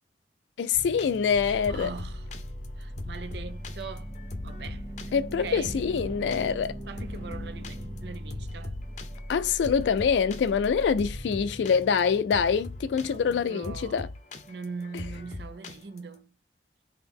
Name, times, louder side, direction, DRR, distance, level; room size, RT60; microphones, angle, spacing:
voice 1, 0.6-1.9 5.1-6.8 9.3-14.1, left 6 dB, 85° left, 0.3 m, -25 dB
sound 1, 0.7-16.2, left 2 dB, 40° left, 0.7 m, -42 dB
sound 2, 1.3-11.2, equal, 20° right, 0.8 m, -39 dB
voice 2, 1.7-2.3 2.8-4.1 4.4-4.9 5.4-5.8 6.9-8.8 13.0-14.1 14.5-16.3, right 5 dB, 70° right, 0.5 m, -41 dB
3.9 x 2.9 x 3.5 m
head